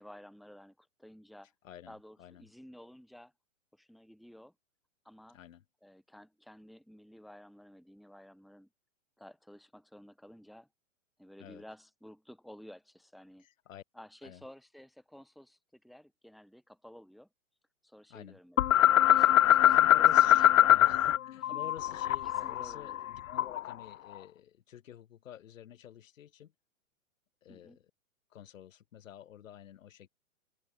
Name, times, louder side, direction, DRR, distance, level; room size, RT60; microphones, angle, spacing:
voice 1, 0.0-1.5 1.9-3.3 3.7-4.5 5.1-5.4 5.8-8.7 9.2-10.7 11.2-13.5 13.9-17.3 17.8-18.6 19.1-20.7 21.5-21.6 22.2-23.0 27.5-27.8, equal, ahead, 1.7 m, -53 dB
voice 2, 1.6-2.4 5.3-5.6 11.4-11.6 13.4-13.8 14.2-14.4 18.1-18.4 19.7-26.5 27.4-27.8 28.3-30.1, left 10 dB, 70° left, 2.7 m, -50 dB
sound 1, 18.6-21.2 21.4-23.7, left 12 dB, 90° left, 0.6 m, -23 dB
hypercardioid pair, 140°, 40 cm